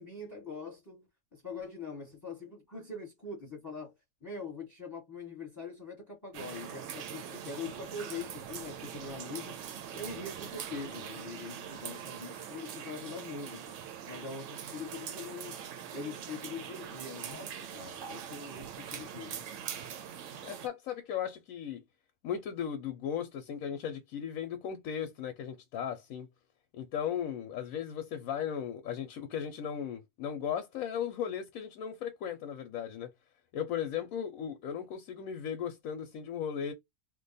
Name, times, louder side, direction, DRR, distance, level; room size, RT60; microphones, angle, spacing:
voice 1, 0.0-3.9 4.2-13.8 14.1-15.6 15.9-19.5, left 4 dB, 15° left, 1.0 m, -43 dB
sound 1, 6.3-20.7, right 8 dB, 65° right, 0.8 m, -43 dB
voice 2, 20.4-21.8 22.2-26.3 26.7-33.1 33.5-36.7, left 8 dB, 75° left, 1.0 m, -36 dB
2.6 x 2.2 x 3.9 m
omnidirectional pair, 1.5 m